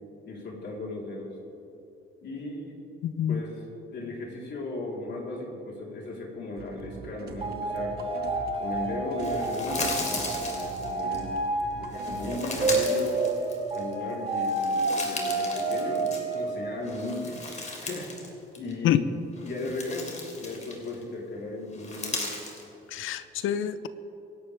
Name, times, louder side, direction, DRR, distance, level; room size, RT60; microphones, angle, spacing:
voice 1, 0.3-1.3 2.2-2.8 3.3-3.6 3.9-8.0 8.6-11.4 11.7-13.4 13.7-17.4 17.8-18.1 18.6-19.0 19.4-22.3 23.0-23.1, left 2 dB, 60° left, -2 dB, 4.0 m, -36 dB
voice 2, 3.0-3.4 18.8-19.0 22.9-23.9, left 10 dB, 85° left, 13 dB, 0.8 m, -26 dB
sound 1, 6.6-12.9, right 5 dB, 50° right, 1.3 m, -44 dB
sound 2, 7.4-17.1, right 2 dB, 30° right, 4.2 m, -30 dB
sound 3, 9.2-11.2 11.9-13.9 14.3-16.5 16.8-18.3 18.6-18.7 19.3-21.0 21.7-22.6, left 2 dB, 35° left, 3.3 m, -36 dB
26.0 x 11.5 x 3.5 m, 2.9 s
cardioid pair, 90°, 20 cm